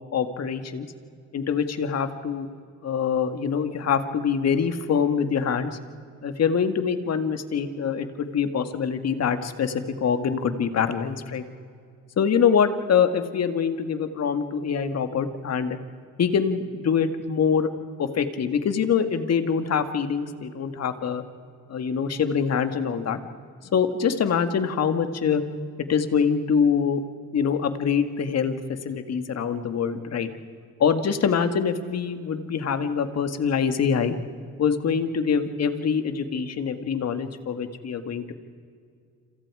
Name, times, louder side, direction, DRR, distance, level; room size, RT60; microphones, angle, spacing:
voice 1, 0.1-0.9 1.3-2.5 2.8-5.7 6.2-9.7 10.0-11.4 12.2-15.8 16.2-17.7 18.0-21.2 21.7-23.2 23.7-25.4 25.9-27.0 27.3-28.6 28.8-30.3 30.8-34.2 34.6-38.3, left 6 dB, 55° left, 9 dB, 1.9 m, -24 dB
28.5 x 27.0 x 4.9 m, 2.2 s
cardioid pair, 90°, 30 cm